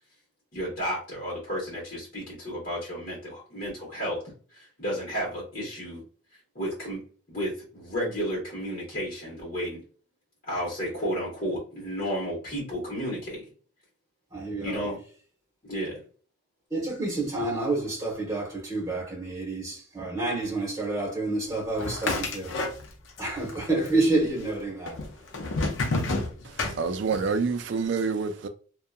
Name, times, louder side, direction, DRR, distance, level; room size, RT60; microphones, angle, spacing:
voice 1, 0.5-4.2 4.5-6.0 6.5-7.0 7.3-9.8 10.5-13.4 14.6-15.0 15.6-16.0, equal, 45° left, 1.2 m, -32 dB
voice 2, 14.3-14.9 16.7-22.5 23.2-25.3, right 2 dB, 15° right, 1.0 m, -29 dB
sound 1, 21.8-23.2 23.5-24.2 24.9-27.3, left 2 dB, 65° left, 0.5 m, -30 dB
voice 3, 26.4-28.5, right 5 dB, 60° right, 0.3 m, -28 dB
2.7 x 2.2 x 2.3 m
head